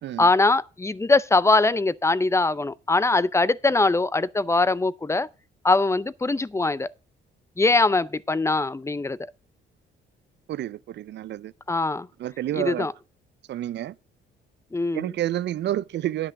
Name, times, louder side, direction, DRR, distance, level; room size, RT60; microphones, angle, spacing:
voice 1, 0.2-5.3 5.6-6.9 7.6-9.2 11.7-12.1 12.6-12.9 14.7-15.1, left 3 dB, 15° left, 0.5 m, -22 dB
voice 2, 10.5-11.5 12.2-12.9 13.5-13.9 14.9-16.3, right 12 dB, 60° right, 0.5 m, -29 dB
10.5 x 6.1 x 5.8 m
cardioid pair, 90°, 20 cm